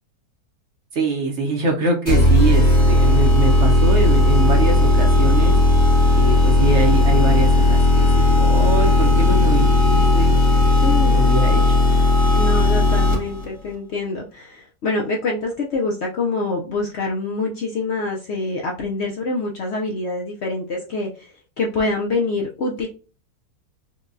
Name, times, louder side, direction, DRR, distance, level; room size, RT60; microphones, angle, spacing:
voice 1, 0.9-5.6 6.1-10.4 11.1-11.8, right 2 dB, 60° right, 1 dB, 0.9 m, -24 dB
sound 1, 2.1-13.4, left 1 dB, 45° left, 1.5 m, -15 dB
voice 2, 10.8-11.5 12.3-22.9, left 3 dB, 60° left, 0 dB, 0.7 m, -25 dB
4.6 x 2.2 x 2.5 m, 0.35 s
omnidirectional pair, 1.6 m